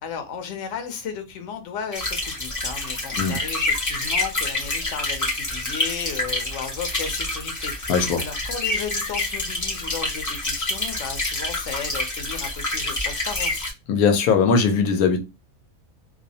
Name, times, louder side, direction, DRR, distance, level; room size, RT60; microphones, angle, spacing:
voice 1, 0.0-13.7, left 6 dB, 65° left, 0.9 m, -34 dB
sound 1, 1.9-13.7, left 2 dB, 25° left, 0.4 m, -27 dB
voice 2, 7.9-8.2 13.9-15.2, left 5 dB, 85° left, 1.1 m, -19 dB
2.6 x 2.0 x 2.7 m
omnidirectional pair, 1.5 m